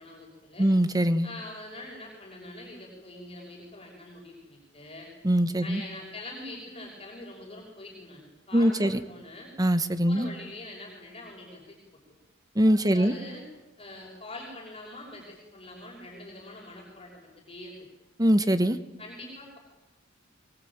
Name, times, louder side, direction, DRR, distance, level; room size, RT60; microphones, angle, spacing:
voice 1, 0.0-0.7 1.2-5.1 5.6-9.5 10.0-11.8 12.9-13.5 13.8-17.8 19.0-19.6, left 2 dB, 30° left, -1 dB, 6.2 m, -44 dB
voice 2, 0.6-1.3 5.2-5.8 8.5-8.9 9.6-10.3 12.6-13.1 18.2-18.8, equal, 20° right, 12 dB, 1.4 m, -22 dB
22.5 x 22.5 x 9.0 m, 1.0 s
head